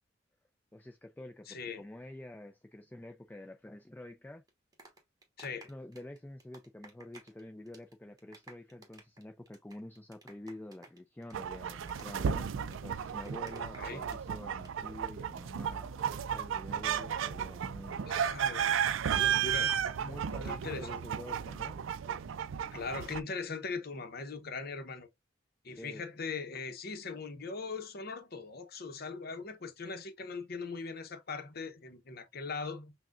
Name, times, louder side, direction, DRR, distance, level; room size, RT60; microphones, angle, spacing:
voice 1, 0.7-4.4 5.6-18.1 20.0-21.9 25.7-26.0, left 1 dB, 10° left, 0.3 m, -48 dB
voice 2, 1.5-1.8 5.4-5.7 13.6-14.0 18.1-18.8 19.1-19.8 20.4-21.0 22.7-25.1 25.6-32.9, left 4 dB, 55° left, 0.8 m, -40 dB
sound 1, 4.5-7.4 7.7-14.2 14.5-14.7, right 2 dB, 20° right, 1.1 m, -55 dB
sound 2, 11.3-23.2, right 8 dB, 80° right, 0.4 m, -34 dB
5.9 x 2.2 x 2.4 m
head